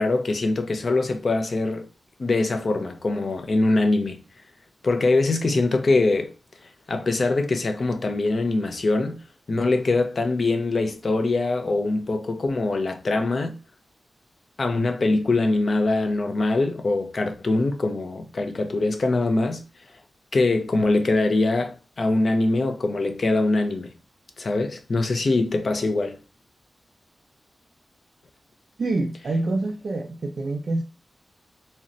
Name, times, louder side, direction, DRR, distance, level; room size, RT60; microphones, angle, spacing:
voice 1, 0.0-1.9 2.2-4.2 4.8-6.3 6.9-13.6 14.6-19.6 20.3-23.9 24.4-26.2, left 2 dB, 50° left, 0.5 m, -23 dB
voice 2, 28.8-30.8, right 2 dB, 60° right, 0.4 m, -26 dB
4.0 x 2.1 x 2.5 m
wide cardioid pair, 110°, 0 cm